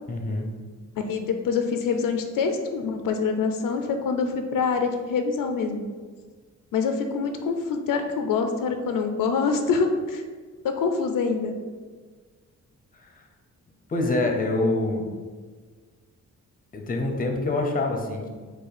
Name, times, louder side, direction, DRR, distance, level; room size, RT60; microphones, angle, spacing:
voice 1, 0.1-0.5 13.0-13.2 13.9-15.1 16.7-18.3, left 2 dB, 25° left, 3 dB, 0.6 m, -26 dB
voice 2, 1.0-5.9 6.7-10.2 10.6-11.5, left 5 dB, 80° left, 5 dB, 0.5 m, -25 dB
5.4 x 2.3 x 4.1 m, 1.5 s
wide cardioid pair, 120°, 32 cm